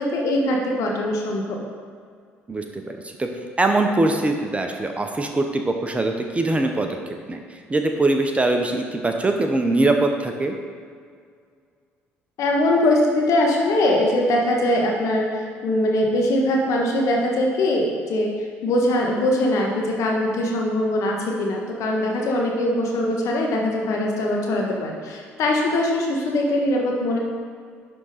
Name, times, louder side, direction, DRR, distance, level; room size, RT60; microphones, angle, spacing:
voice 1, 0.0-1.6 12.4-18.3 18.6-27.2, left 1 dB, 55° left, 0 dB, 1.4 m, -22 dB
voice 2, 2.5-3.3 3.6-7.4 7.7-10.5, right 2 dB, 20° right, 4 dB, 0.8 m, -22 dB
11.0 x 3.7 x 4.1 m, 2.1 s
figure-of-eight pair, 55°, 6 cm